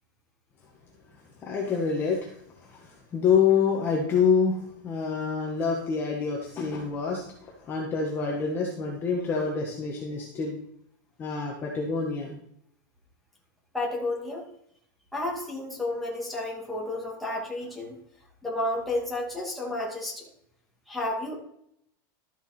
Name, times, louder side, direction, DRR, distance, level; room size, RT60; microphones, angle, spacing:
voice 1, 1.4-10.6 11.2-12.4, left 6 dB, 20° left, -2 dB, 1.4 m, -27 dB
voice 2, 13.7-14.4 15.1-18.0 18.4-20.3 20.9-21.3, left 1 dB, ahead, -4 dB, 2.3 m, -31 dB
12.5 x 7.1 x 4.4 m, 0.73 s
supercardioid pair, 170°, 11 cm